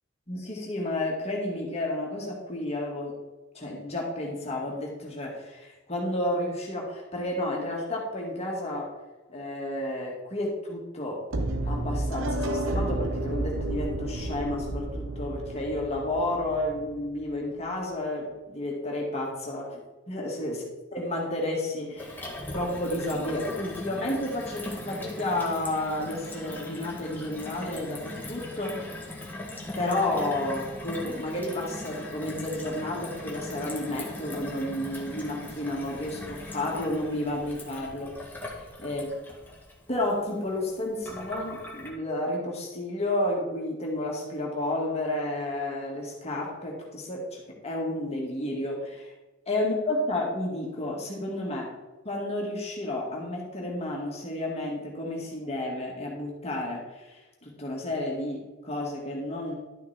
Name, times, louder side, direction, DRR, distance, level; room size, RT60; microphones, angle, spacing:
voice 1, 0.3-3.2 3.5-8.9 9.3-11.2 11.6-19.8 20.1-20.6 20.9-28.9 29.8-38.2 38.8-39.1 39.9-49.1 49.5-51.7 52.0-59.5, left 1 dB, 30° left, -2 dB, 2.3 m, -31 dB
sound 1, 11.3-17.3, right 1 dB, 70° right, 1.0 m, -31 dB
Gurgling / Water tap faucet / Sink (filling or washing), 22.0-41.9, left 1 dB, 10° left, 1.8 m, -40 dB
12.0 x 5.9 x 4.4 m, 1.1 s
head